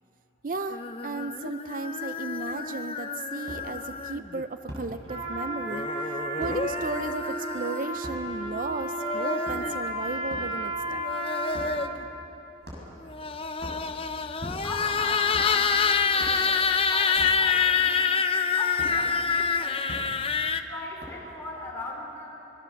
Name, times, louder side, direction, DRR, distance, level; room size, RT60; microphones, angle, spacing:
voice 1, 0.4-11.0, right 3 dB, 50° right, 10 dB, 0.5 m, -35 dB
sound 1, 0.7-4.4 5.6-8.0 8.8-9.8 10.9-12.0 13.0-20.6, left 5 dB, 30° left, 0.7 m, -27 dB
sound 2, 2.5-2.6 3.5-3.6 4.7-4.9 6.4-6.6 8.0-8.2 9.3-9.8 10.3-10.5 11.5-11.8 12.6-13.0 13.5-13.8 14.4-14.9 15.3-15.5 16.2-16.4 17.1-17.4 18.8-18.9 19.9-20.0 21.0-21.3, equal, 65° right, 6.6 m, -40 dB
Trumpet, 5.0-12.1, right 1 dB, 30° right, 5.0 m, -33 dB
voice 2, 14.5-18.1 18.4-19.9 20.6-22.4, left 1 dB, 15° left, -3 dB, 4.5 m, -40 dB
25.5 x 21.0 x 7.2 m, 3.0 s
head